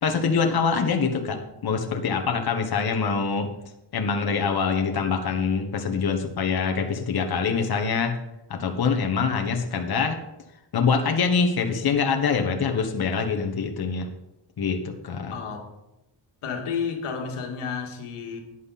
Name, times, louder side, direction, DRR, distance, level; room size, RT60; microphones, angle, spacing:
voice 1, 0.0-3.5 3.9-8.2 8.5-10.2 10.7-14.1 14.6-15.3, left 5 dB, 45° left, 4 dB, 1.4 m, -24 dB
voice 2, 15.3-15.7 16.4-18.4, left 6 dB, 90° left, 2 dB, 2.2 m, -31 dB
11.0 x 9.5 x 4.2 m, 0.91 s
cardioid pair, 105°, 49 cm